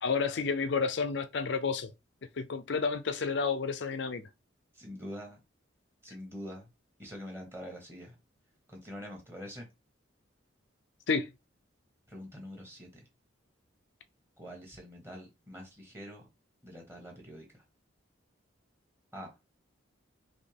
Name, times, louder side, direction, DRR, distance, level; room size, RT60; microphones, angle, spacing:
voice 1, 0.0-1.9 2.4-4.3 11.1-11.3, left 5 dB, 60° left, 0.5 m, -30 dB
voice 2, 4.7-5.4 6.0-6.7 7.0-8.1 8.7-9.7 12.1-13.0 14.4-16.2 16.6-17.6 19.1-19.3, equal, 15° right, 1.3 m, -45 dB
4.2 x 3.2 x 3.4 m
head